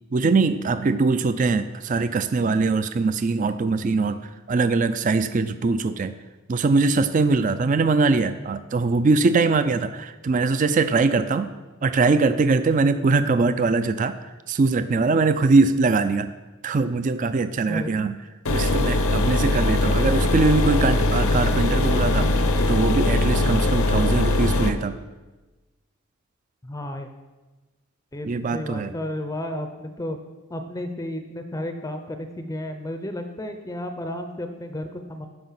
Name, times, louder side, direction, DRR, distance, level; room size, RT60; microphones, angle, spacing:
voice 1, 0.1-6.1 6.5-11.5 11.8-14.1 14.5-16.3 16.6-18.2 18.5-22.4 22.7-24.9 28.3-28.9, right 3 dB, 35° right, 11 dB, 0.3 m, -22 dB
sound 1, 18.5-24.7, left 2 dB, 80° left, 0.8 m, -21 dB
voice 2, 26.6-27.1 28.1-30.2 30.5-35.3, left 1 dB, 15° left, 7 dB, 0.5 m, -32 dB
13.0 x 5.2 x 5.6 m, 1.2 s
head